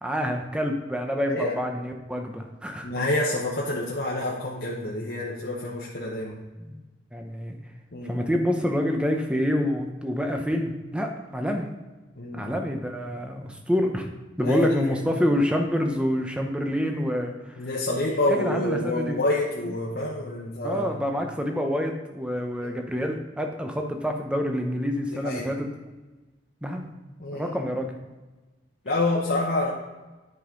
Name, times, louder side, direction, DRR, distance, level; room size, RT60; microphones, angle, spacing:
voice 1, 0.0-2.9 6.6-6.8 7.1-7.6 8.1-11.7 12.3-14.1 14.4-17.3 18.3-19.2 20.6-25.7 26.6-26.9 27.3-28.0, equal, 5° right, 3 dB, 0.8 m, -27 dB
voice 2, 2.8-6.4 7.9-8.2 12.2-12.5 14.4-15.0 17.6-20.9 22.6-22.7 25.2-25.5 27.2-27.5 28.8-29.7, left 2 dB, 55° left, -5 dB, 1.1 m, -27 dB
9.8 x 5.4 x 3.8 m, 1.2 s
head